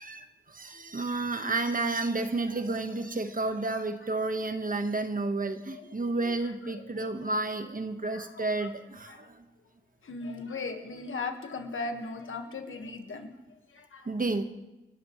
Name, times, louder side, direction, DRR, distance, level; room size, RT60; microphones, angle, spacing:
voice 1, 0.0-9.4 14.0-14.4, right 3 dB, 45° right, 7 dB, 1.3 m, -31 dB
voice 2, 5.7-6.3 6.7-7.1 8.1-8.7 9.0-9.3 10.0-14.1, left 3 dB, 80° left, 5 dB, 1.6 m, -39 dB
28.5 x 12.5 x 3.2 m, 1.0 s
wide cardioid pair, 70°, 20 cm